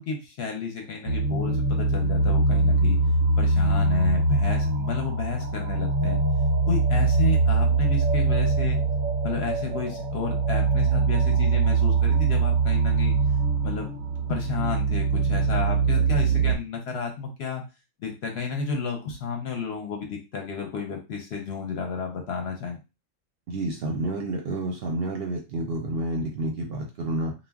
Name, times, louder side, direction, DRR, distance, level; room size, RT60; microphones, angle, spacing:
voice 1, 0.0-3.0 3.4-6.2 6.7-8.8 9.2-13.2 13.6-13.9 14.3-17.7 18.0-22.8, left 5 dB, 60° left, 2 dB, 0.8 m, -31 dB
sound 1, 1.1-16.6, right 3 dB, 85° right, 1.0 m, -23 dB
voice 2, 23.5-27.3, right 1 dB, 60° right, 1 dB, 0.7 m, -29 dB
2.3 x 2.1 x 3.4 m, 0.28 s
omnidirectional pair, 1.4 m